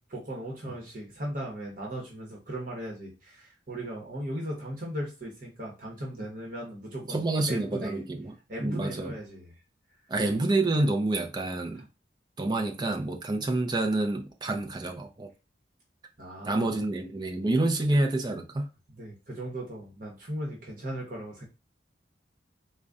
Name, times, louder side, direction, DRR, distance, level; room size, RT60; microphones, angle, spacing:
voice 1, 0.1-8.0 8.5-9.5 16.2-16.7 18.9-21.5, equal, 45° right, 1.0 m, -37 dB
voice 2, 7.1-8.3 8.6-9.1 10.1-11.9 12.4-15.3 16.4-18.7, right 2 dB, 20° right, 0.5 m, -28 dB
3.8 x 2.2 x 3.5 m
head